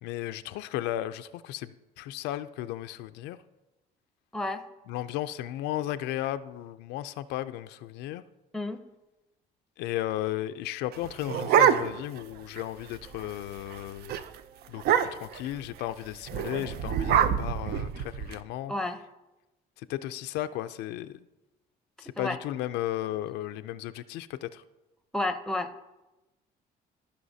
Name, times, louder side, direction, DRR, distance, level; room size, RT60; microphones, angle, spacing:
voice 1, 0.0-3.4 4.9-8.2 9.8-14.1 14.7-18.7 19.8-21.2 22.0-24.6, left 13 dB, 90° left, 11 dB, 0.4 m, -35 dB
sound 1, 10.9-12.2 12.6-12.7 12.9-13.3 13.6-13.8 14.1-14.2 14.8-15.4 16.3-18.3, right 9 dB, 70° right, 0.5 m, -25 dB
voice 2, 25.1-25.7, left 2 dB, 5° left, 8 dB, 0.6 m, -30 dB
14.5 x 5.6 x 2.7 m, 1.0 s
cardioid pair, 110°, 17 cm